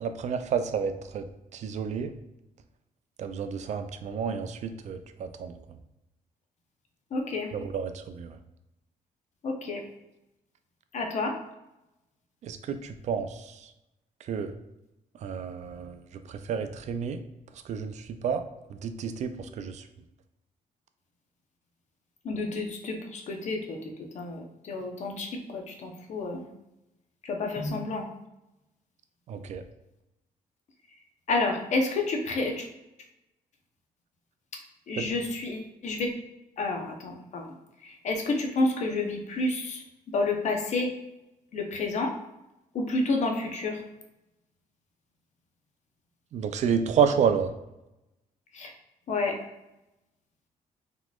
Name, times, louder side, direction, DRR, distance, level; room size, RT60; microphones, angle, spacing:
voice 1, 0.0-1.3 1.5-2.1 3.2-5.5 7.5-8.4 12.4-13.7 14.2-14.5 15.2-17.2 17.6-18.4 18.7-19.9 29.3-29.6 35.0-35.2 46.3-47.5, right 7 dB, 55° right, 9 dB, 0.4 m, -30 dB
voice 2, 7.1-7.5 9.4-9.8 10.9-11.3 22.2-26.5 27.2-28.0 31.3-32.7 34.9-36.1 36.6-37.5 37.8-39.8 40.1-40.9 41.5-42.1 42.7-43.8 48.5-48.7 49.1-49.4, left 3 dB, 50° left, 2 dB, 0.7 m, -30 dB
3.9 x 2.9 x 2.3 m, 0.93 s
cardioid pair, 115°, 15 cm